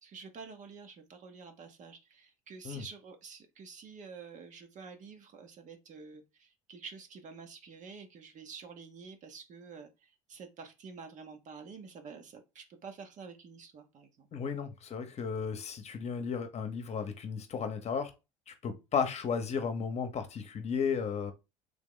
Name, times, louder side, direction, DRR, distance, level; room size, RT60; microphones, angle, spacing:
voice 1, 0.0-14.3, right 5 dB, 45° right, 0.9 m, -49 dB
voice 2, 14.3-18.1 18.5-21.3, left 6 dB, 40° left, 0.9 m, -34 dB
3.5 x 3.0 x 3.8 m
hypercardioid pair, 70°, 17 cm